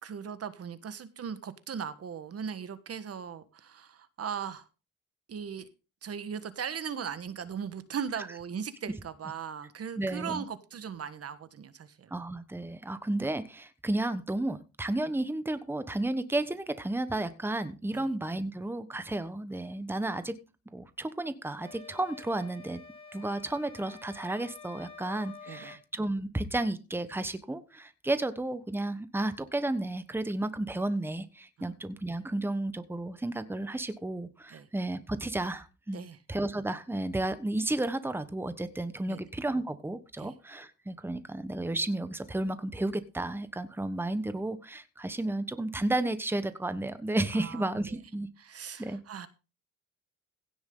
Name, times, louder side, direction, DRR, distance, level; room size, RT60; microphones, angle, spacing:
voice 1, 0.0-4.7 5.3-5.7 6.0-12.1 17.9-18.1 25.5-25.8 31.6-31.7 34.5-34.7 35.9-36.2 39.1-39.2 40.2-40.3 47.3-48.0 48.4-49.3, right 7 dB, 50° right, 1.5 m, -38 dB
voice 2, 10.0-10.4 12.1-20.3 20.7-22.8 23.1-48.3 48.8-49.0, right 2 dB, 5° right, 1.2 m, -32 dB
sound 1, 21.6-25.8, left 4 dB, 20° left, 5.6 m, -49 dB
16.5 x 7.1 x 3.9 m
cardioid pair, 90°, 30 cm